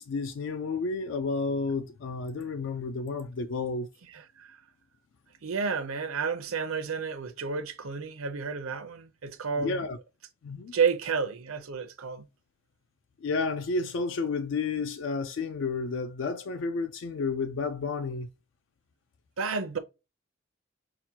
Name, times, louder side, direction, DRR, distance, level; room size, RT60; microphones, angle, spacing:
voice 1, 0.0-3.9 9.6-10.0 10.4-10.8 13.2-18.3, left 4 dB, 60° left, 0.3 m, -31 dB
voice 2, 4.1-4.6 5.4-9.9 10.7-12.2 19.4-19.8, right 5 dB, 85° right, 0.6 m, -31 dB
5.9 x 2.1 x 2.8 m
head